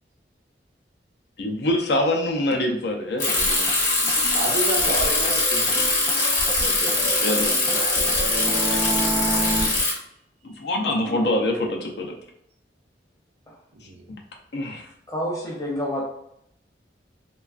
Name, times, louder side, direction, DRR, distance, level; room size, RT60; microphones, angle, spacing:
voice 1, 1.4-3.6 6.6-8.5 10.4-12.1 14.5-14.9, left 1 dB, 70° left, 2 dB, 0.5 m, -26 dB
Bicycle, 3.2-9.9, left 2 dB, 45° left, 1.0 m, -22 dB
sound 1, 3.3-3.4 3.7-3.8 4.1-4.2 4.5-4.6 4.9-6.2 6.5-9.7, right 1 dB, 15° right, 0.3 m, -31 dB
Human voice / Acoustic guitar, 3.4-9.8, left 1 dB, 85° left, 0.9 m, -34 dB
voice 2, 4.3-6.1 10.5-10.7 13.7-14.1, right 2 dB, 70° right, 1 dB, 0.5 m, -30 dB
voice 3, 10.8-11.3 13.5-13.6 15.1-16.0, equal, 20° left, -3 dB, 0.7 m, -29 dB
3.2 x 2.3 x 2.4 m, 0.74 s
head